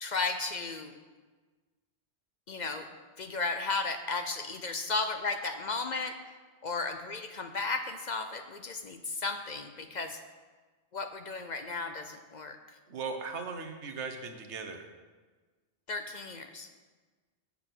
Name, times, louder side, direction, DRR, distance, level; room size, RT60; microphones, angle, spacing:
voice 1, 0.0-0.9 2.5-2.8 3.2-6.2 6.6-10.2 10.9-12.6 15.9-16.7, left 3 dB, 50° left, 7 dB, 0.6 m, -34 dB
voice 2, 12.9-14.8, right 5 dB, 85° right, 6 dB, 1.2 m, -38 dB
8.4 x 7.0 x 5.9 m, 1.4 s
omnidirectional pair, 1.1 m